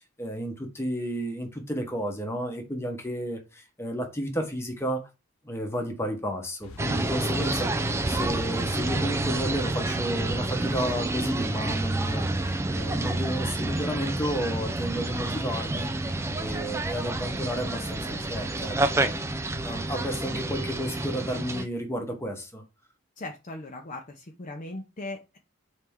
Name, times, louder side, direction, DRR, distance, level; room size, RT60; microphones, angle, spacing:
voice 1, 0.2-5.1 5.4-12.3 12.7-15.9 16.4-19.3 19.6-22.6, equal, 10° left, 1.0 m, -32 dB
sound 1, 6.6-20.8, left 3 dB, 85° left, 0.6 m, -44 dB
sound 2, 6.8-21.7, right 2 dB, 15° right, 0.3 m, -29 dB
voice 2, 23.2-25.4, left 2 dB, 35° left, 0.6 m, -39 dB
4.4 x 3.3 x 3.5 m
head